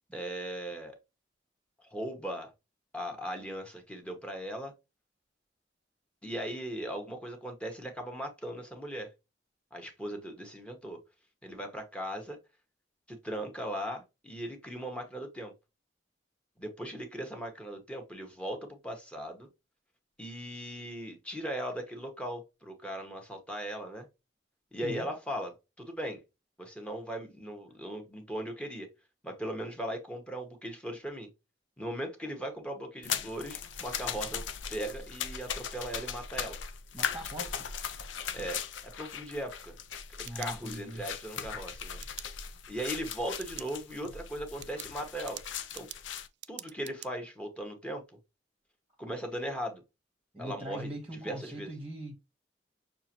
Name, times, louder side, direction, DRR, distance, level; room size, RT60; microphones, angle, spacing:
voice 1, 0.1-1.0 1.9-2.5 2.9-4.7 6.2-9.1 9.7-11.0 11.4-12.4 13.1-15.5 16.6-19.5 20.2-24.1 24.7-26.2 26.6-28.9 29.2-31.3 31.8-34.4 34.7-36.6 38.3-39.7 40.2-42.0 42.7-45.4 45.7-45.9 46.5-48.0 49.0-49.8 50.4-51.7, equal, 5° left, 1.1 m, -38 dB
sound 1, 33.0-46.3, left 7 dB, 90° left, 0.6 m, -39 dB
voice 2, 36.9-37.7 40.2-41.0 50.3-52.1, right 1 dB, 10° right, 1.3 m, -41 dB
sound 2, 39.9-41.1 42.0-42.3 43.3-43.7 44.1-44.2 44.6-47.1, right 15 dB, 65° right, 0.3 m, -46 dB
6.6 x 2.5 x 2.9 m
head